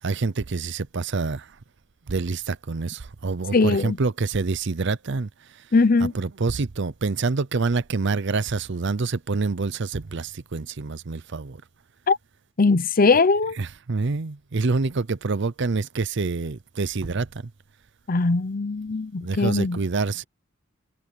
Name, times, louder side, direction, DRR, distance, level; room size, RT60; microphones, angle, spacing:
voice 1, 0.0-1.5 2.1-5.6 6.0-11.6 13.6-17.5 19.2-20.2, right 4 dB, 60° right, 0.7 m, -27 dB
voice 2, 3.5-4.0 5.7-6.1 12.1-12.2 12.6-13.6 18.1-19.8, left 3 dB, 45° left, 0.7 m, -20 dB
head